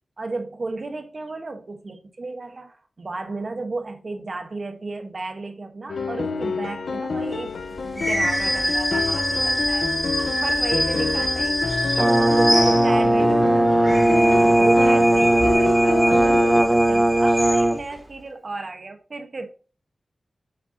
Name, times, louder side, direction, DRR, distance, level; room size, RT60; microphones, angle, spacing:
voice 1, 0.2-7.6 7.8-14.0 14.4-19.5, right 3 dB, 50° right, 1.3 m, -34 dB
sound 1, 5.9-16.6, left 4 dB, 80° left, 0.9 m, -28 dB
sound 2, 7.9-13.2 13.7-17.9, equal, 5° left, 2.3 m, -25 dB
Brass instrument, 12.0-17.8, right 1 dB, 25° right, 1.1 m, -18 dB
7.8 x 7.8 x 2.9 m
wide cardioid pair, 95°, 0 cm